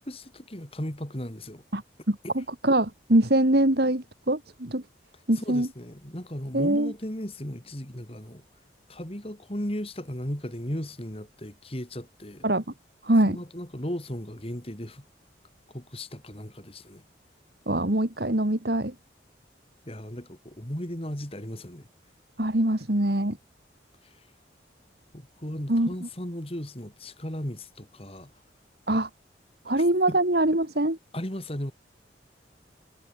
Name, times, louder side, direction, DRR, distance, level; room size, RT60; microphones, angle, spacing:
voice 1, 0.0-1.6 5.4-8.4 8.9-12.5 13.3-15.0 15.7-17.0 19.9-21.9 24.0-24.3 25.1-28.3 30.1-30.2 31.1-31.7, equal, 30° left, 3.5 m, -36 dB
voice 2, 2.1-4.8 5.3-5.7 6.5-6.9 12.4-12.6 13.0-13.4 17.7-18.9 22.4-23.4 25.7-25.9 28.9-29.1 29.7-31.0, right 1 dB, 60° right, 2.4 m, -23 dB
head